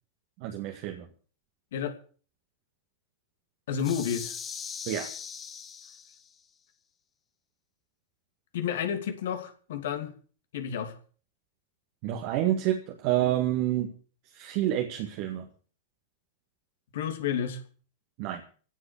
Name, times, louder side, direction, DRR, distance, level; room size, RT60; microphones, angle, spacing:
voice 1, 0.4-1.1 4.9-5.1 12.0-13.9 14.3-15.5 18.2-18.4, right 12 dB, 45° right, 4 dB, 2.0 m, -28 dB
voice 2, 3.7-4.4 8.5-10.1 10.5-10.9 16.9-17.6, left 8 dB, 60° left, 8 dB, 2.7 m, -31 dB
sound 1, 3.8-6.4, left 7 dB, 25° left, 1.8 m, -40 dB
17.0 x 8.1 x 8.3 m, 0.41 s
figure-of-eight pair, 90°, 0 cm